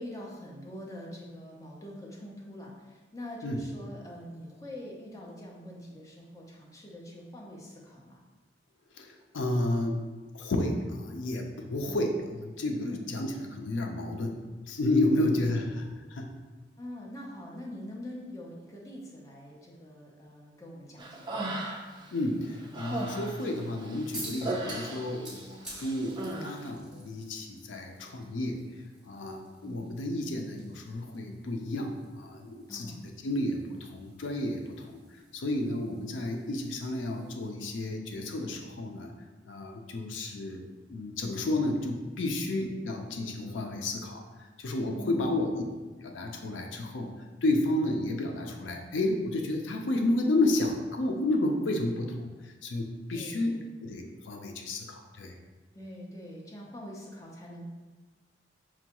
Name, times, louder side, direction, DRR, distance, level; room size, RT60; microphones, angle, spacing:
voice 1, 0.0-8.2 11.8-12.0 12.8-13.0 15.1-15.4 16.8-21.5 29.6-29.9 32.7-33.0 45.0-45.3 53.1-53.6 55.7-57.6, left 1 dB, 20° left, -3 dB, 0.6 m, -44 dB
voice 2, 8.9-10.0 10.3-14.4 14.7-16.3 22.1-28.6 29.0-33.0 33.2-35.0 35.3-39.1 39.5-44.2 44.6-45.5 46.0-47.1 47.4-55.4, left 1 dB, 85° left, 3 dB, 0.5 m, -31 dB
Human voice, 21.0-22.1 22.4-25.4 25.7-26.5, right 1 dB, 25° right, 0.4 m, -36 dB
sound 1, 24.1-37.5, right 1 dB, 5° right, 0.9 m, -50 dB
5.9 x 2.2 x 2.9 m, 1.3 s
head